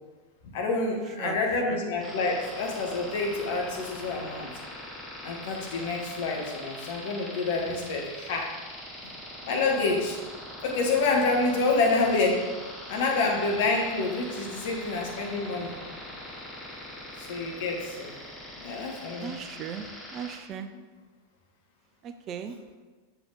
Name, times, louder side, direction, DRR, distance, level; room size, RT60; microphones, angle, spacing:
voice 1, 0.5-4.5 5.2-8.5 9.4-10.2 10.6-12.4 12.9-15.7 17.2-18.1 18.6-19.3, left 3 dB, 55° left, 0 dB, 1.5 m, -27 dB
sound 1, 2.0-20.4, left 1 dB, 10° left, 1.8 m, -42 dB
voice 2, 19.2-20.7 22.0-22.6, right 8 dB, 30° right, 9 dB, 0.4 m, -37 dB
6.8 x 5.7 x 4.0 m, 1.4 s
figure-of-eight pair, 90°, 0 cm